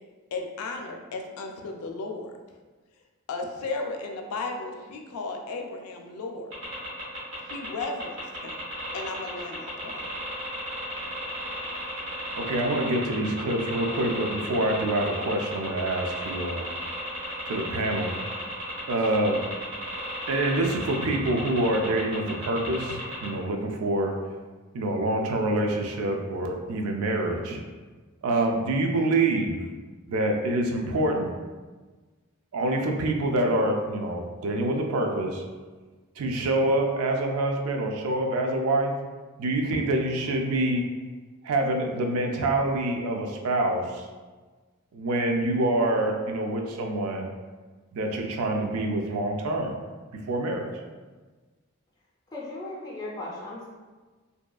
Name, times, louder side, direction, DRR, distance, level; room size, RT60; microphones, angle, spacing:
voice 1, 0.3-2.4 3.3-6.6 7.4-8.6 8.9-10.1, left 3 dB, 85° left, 3 dB, 0.4 m, -35 dB
sound 1, 6.5-23.3, equal, 60° right, 1.0 m, -35 dB
voice 2, 12.4-16.7 17.5-18.1 18.9-19.4 20.3-24.1 24.7-27.6 28.2-29.6 30.1-31.3 32.5-35.4 36.2-38.9 39.4-40.8 41.4-44.1 44.9-47.3 47.9-49.7 50.3-50.7, right 1 dB, 85° right, 2 dB, 0.4 m, -26 dB
voice 3, 52.3-53.7, left 2 dB, 20° left, -5 dB, 0.4 m, -37 dB
2.6 x 2.3 x 2.2 m, 1.3 s
head